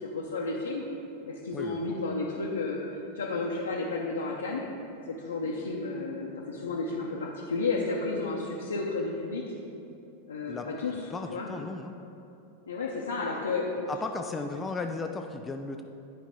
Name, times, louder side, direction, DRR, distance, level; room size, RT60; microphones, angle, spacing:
voice 1, 0.1-0.8 1.3-4.7 5.1-9.4 10.3-10.9 11.3-11.5 12.7-13.9, left 3 dB, 70° left, -3 dB, 0.6 m, -32 dB
voice 2, 1.5-2.0 10.5-10.7 11.1-11.9 13.9-15.8, left 3 dB, 15° left, 5 dB, 0.3 m, -35 dB
10.0 x 5.0 x 3.6 m, 2.8 s
figure-of-eight pair, 90°, 0 cm